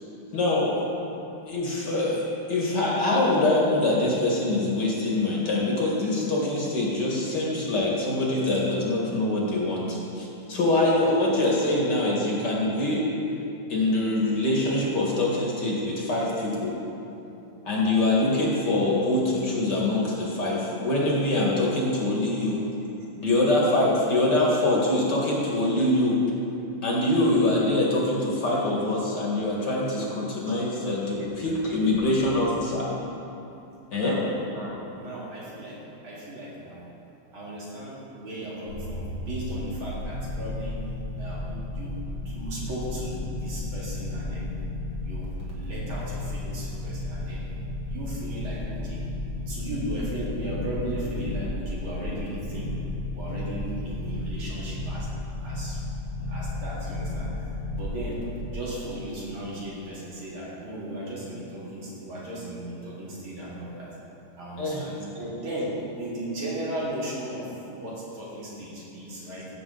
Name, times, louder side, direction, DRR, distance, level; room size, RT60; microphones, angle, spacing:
voice 1, 0.3-0.9 1.5-2.2 2.5-13.0 13.7-16.7 17.7-22.6 23.2-26.2 26.8-32.9 33.9-34.2 41.5-41.6 64.6-64.8, left 2 dB, 50° left, -4 dB, 2.4 m, -24 dB
voice 2, 31.2-31.6 32.2-32.3 33.9-35.8 36.0-36.9 37.3-40.8 41.2-41.5 41.7-41.9 42.2-44.5 45.0-47.5 47.9-49.1 49.5-52.7 53.1-55.1 55.4-55.8 56.3-57.5 57.7-58.2 58.5-63.9 64.3-69.5, right 1 dB, 70° right, -7 dB, 3.1 m, -36 dB
sound 1, 38.7-58.4, left 2 dB, 80° left, 2.8 m, -33 dB
15.0 x 7.5 x 3.9 m, 2.8 s
omnidirectional pair, 2.4 m